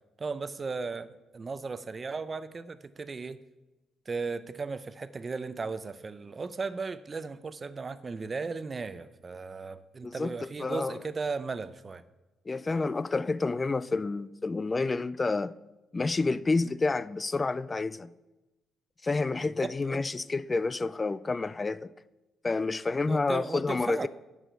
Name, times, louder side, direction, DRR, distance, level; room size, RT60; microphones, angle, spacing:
voice 1, 0.2-3.4 4.1-12.0 19.6-20.0 23.1-24.1, right 4 dB, 35° right, 0.6 m, -36 dB
voice 2, 10.0-11.0 12.5-15.5 15.9-18.1 19.0-21.9 22.4-24.1, left 3 dB, 25° left, 0.3 m, -29 dB
9.9 x 4.9 x 6.8 m
cardioid pair, 90°, 0 cm